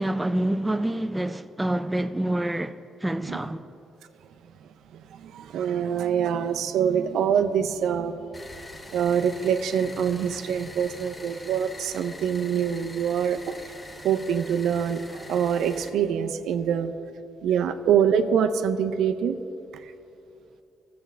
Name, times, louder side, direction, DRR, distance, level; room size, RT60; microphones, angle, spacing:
voice 1, 0.0-3.6, right 1 dB, 10° right, 0.4 m, -27 dB
voice 2, 4.6-8.2 8.9-13.7 14.0-16.9 17.4-19.4 19.7-19.9, right 8 dB, 80° right, 0.5 m, -25 dB
sound 1, 8.3-15.9, left 1 dB, 15° left, 0.8 m, -44 dB
14.0 x 7.6 x 3.3 m
cardioid pair, 90°, 0 cm